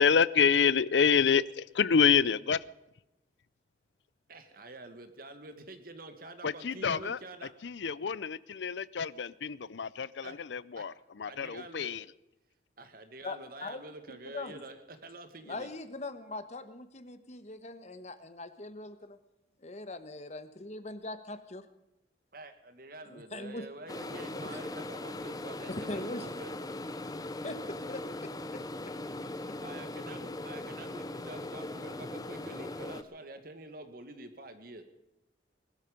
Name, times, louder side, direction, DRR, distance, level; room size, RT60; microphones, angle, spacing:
voice 1, 0.0-2.6 6.4-7.2 7.6-12.0, left 6 dB, 85° left, 20 dB, 0.6 m, -27 dB
voice 2, 4.3-7.5 10.2-10.4 10.8-10.9 11.3-11.9 12.8-15.7 22.3-26.5 29.6-34.8, right 2 dB, 55° right, 9 dB, 2.0 m, -47 dB
voice 3, 13.2-13.8 14.3-14.6 15.4-19.2 19.6-21.6 23.1-23.7 24.3-24.6 25.7-26.3 27.4-28.9 29.5-29.6, left 2 dB, 40° left, 11 dB, 1.3 m, -41 dB
sound 1, 23.9-33.0, left 2 dB, 20° left, 0.8 m, -39 dB
20.5 x 13.0 x 5.3 m, 0.94 s
head